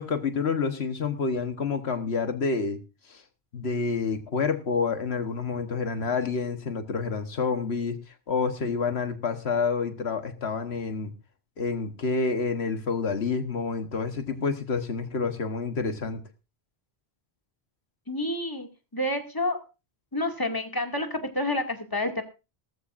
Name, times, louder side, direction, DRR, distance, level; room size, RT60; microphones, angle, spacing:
voice 1, 0.0-2.8 3.1-3.2 3.5-8.0 8.3-11.1 11.6-16.2, left 5 dB, 80° left, 8 dB, 1.5 m, -28 dB
voice 2, 18.1-19.6 20.1-22.2, left 1 dB, 20° left, 4 dB, 2.2 m, -29 dB
18.0 x 14.5 x 2.5 m, 0.30 s
omnidirectional pair, 1.1 m